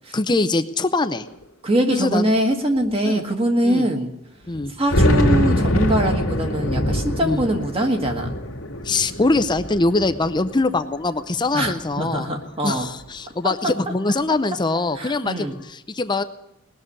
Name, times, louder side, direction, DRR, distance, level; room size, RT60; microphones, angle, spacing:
voice 1, 0.1-1.3 1.9-2.3 3.0-3.2 3.6-3.9 4.5-4.7 7.2-7.4 8.8-12.3 12.6-16.2, left 3 dB, 20° left, 11 dB, 0.5 m, -23 dB
sound 1, 1.0-1.1 1.3-1.4 2.2-2.3 2.8-2.9 4.5-10.9 11.4-12.3, equal, 90° left, 2.0 m, -23 dB
voice 2, 1.6-4.1 4.8-8.3 11.5-12.9 13.4-13.7 14.9-15.6, right 1 dB, 25° right, 4 dB, 1.6 m, -22 dB
19.5 x 6.8 x 9.8 m, 0.89 s
head